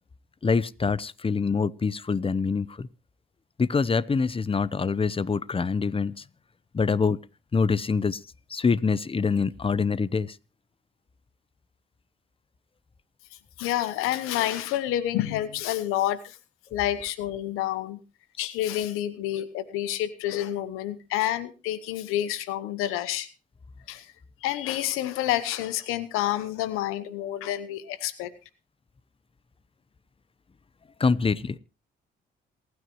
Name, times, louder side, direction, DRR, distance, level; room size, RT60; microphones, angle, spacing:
voice 1, 0.4-2.9 3.6-6.2 6.7-7.2 7.5-8.2 8.5-10.4 31.0-31.6, left 5 dB, 25° left, 0.8 m, -25 dB
voice 2, 13.6-16.4 16.7-18.0 18.4-23.3 23.9-24.1 24.4-28.3, left 13 dB, 90° left, 1.0 m, -28 dB
27.5 x 9.6 x 3.0 m
supercardioid pair, 60°, 21 cm